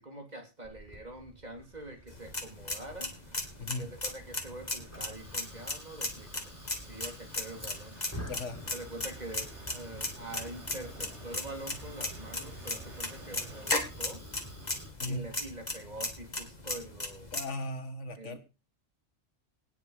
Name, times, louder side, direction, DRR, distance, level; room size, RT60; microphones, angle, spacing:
voice 1, 0.0-3.1 3.8-8.0 8.7-14.2 15.0-17.3 18.2-18.4, right 1 dB, 35° right, 4 dB, 3.6 m, -45 dB
Fire, 0.6-14.9, equal, 10° left, 4.2 m, -49 dB
sound 1, 1.6-13.8, right 3 dB, 75° right, 3.7 m, -56 dB
sound 2, 2.1-17.4, left 2 dB, 35° left, 2.7 m, -37 dB
voice 2, 3.6-3.9 8.3-8.6 15.0-15.3 17.3-18.4, left 2 dB, 85° left, 9 dB, 2.0 m, -37 dB
18.5 x 7.3 x 5.1 m, 0.32 s
omnidirectional pair, 1.2 m